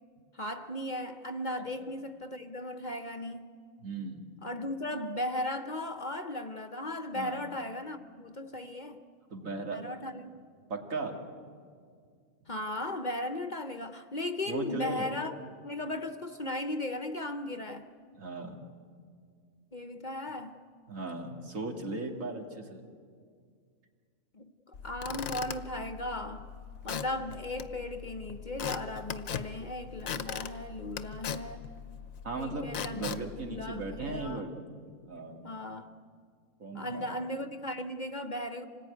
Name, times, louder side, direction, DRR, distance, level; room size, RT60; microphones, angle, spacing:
voice 1, 0.3-3.5 4.4-9.0 9.7-10.4 12.5-15.3 15.6-17.9 19.7-20.6 24.3-26.5 26.8-31.7 32.4-34.5 35.4-35.9 36.7-38.6, left 1 dB, 40° left, 8 dB, 0.8 m, -37 dB
voice 2, 3.8-4.2 7.1-7.4 9.3-9.8 10.7-11.3 14.5-15.1 18.1-18.6 20.9-22.8 32.2-34.5 35.1-35.4 36.6-37.1, right 3 dB, 75° right, 2 dB, 2.6 m, -37 dB
Squeak / Wood, 24.7-34.3, left 8 dB, 85° left, 1.3 m, -40 dB
26.0 x 19.5 x 9.6 m, 2.1 s
omnidirectional pair, 1.4 m